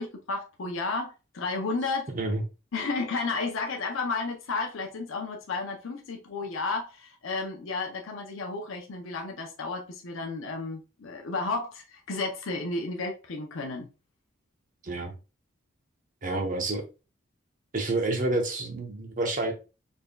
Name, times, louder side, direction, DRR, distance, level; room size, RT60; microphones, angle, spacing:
voice 1, 0.0-2.1 2.7-13.9, left 3 dB, 75° left, 0.6 m, -32 dB
voice 2, 16.2-16.8 17.7-19.5, right 2 dB, 40° right, 0.8 m, -28 dB
4.3 x 3.5 x 2.2 m
head